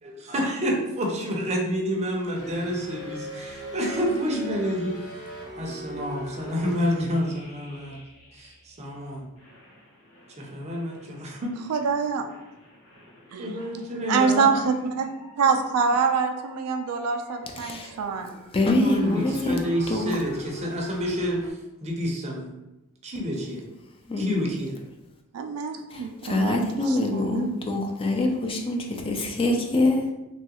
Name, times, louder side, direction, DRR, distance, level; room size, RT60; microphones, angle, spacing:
voice 1, 0.0-5.0 5.6-8.0 8.3-9.3 10.4-11.6 13.4-14.7 18.8-22.6 23.0-23.6 24.2-24.8, equal, 30° right, 0 dB, 0.5 m, -29 dB
sound 1, 2.3-8.9 9.4-21.5, left 1 dB, 80° left, 0.9 m, -42 dB
voice 2, 11.7-12.2 13.3-13.6 14.1-15.1 15.4-18.4 25.3-27.6, right 5 dB, 80° right, 5 dB, 0.4 m, -25 dB
voice 3, 17.6-17.9 18.5-20.1 24.1-24.4 25.9-30.0, left 2 dB, 25° left, 2 dB, 0.3 m, -25 dB
3.0 x 2.3 x 2.8 m, 0.96 s
head